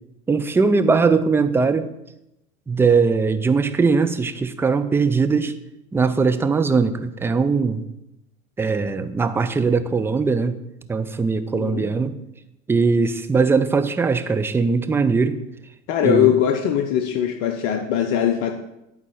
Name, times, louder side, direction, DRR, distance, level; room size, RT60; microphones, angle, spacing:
voice 1, 0.3-1.9 2.7-5.5 5.9-7.8 8.6-10.6 10.9-12.2 12.7-15.4 16.0-16.3, right 4 dB, 5° right, 9 dB, 0.4 m, -20 dB
voice 2, 11.5-11.9 15.9-18.5, left 9 dB, 45° left, 5 dB, 0.9 m, -21 dB
8.8 x 4.1 x 7.1 m, 0.87 s
figure-of-eight pair, 85°, 40 cm